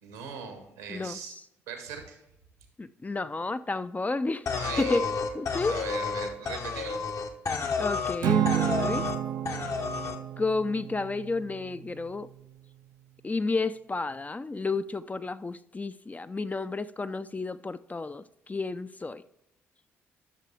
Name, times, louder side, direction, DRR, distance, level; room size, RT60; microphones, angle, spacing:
voice 1, 0.0-1.3 1.7-2.2 4.6-5.1 5.7-7.0, right 6 dB, 85° right, 1.3 m, -40 dB
voice 2, 0.9-1.3 2.8-4.5 4.8-5.1 5.3-5.8 7.8-9.1 10.4-12.3 13.2-19.2, left 3 dB, 20° left, 0.4 m, -31 dB
sound 1, 4.5-8.2 8.5-9.2 9.5-10.2, left 4 dB, 45° left, 0.9 m, -31 dB
Acoustic guitar / Strum, 8.2-12.7, right 11 dB, 65° right, 0.5 m, -31 dB
11.0 x 6.5 x 3.5 m
figure-of-eight pair, 40°, 7 cm